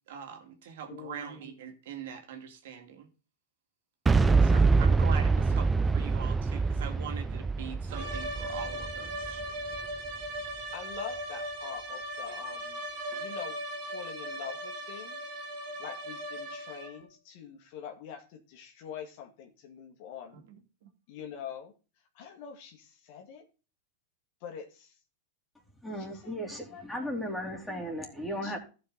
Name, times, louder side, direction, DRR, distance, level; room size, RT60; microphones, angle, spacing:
voice 1, 0.1-3.1 4.4-9.4 20.3-20.4, right 8 dB, 70° right, 2.4 m, -42 dB
voice 2, 0.9-1.4 4.1-4.9 10.7-12.8 13.1-15.2 15.8-20.4 21.1-21.7 22.1-23.5 24.4-24.9 25.9-27.1 28.4-28.6, left 8 dB, 55° left, 2.2 m, -45 dB
Boom, 4.1-9.9, right 4 dB, 15° right, 0.6 m, -25 dB
sound 1, 7.9-17.1, right 1 dB, 50° right, 2.5 m, -38 dB
voice 3, 25.8-28.6, equal, 5° left, 3.0 m, -36 dB
14.5 x 5.3 x 4.0 m
hypercardioid pair, 110°, 0 cm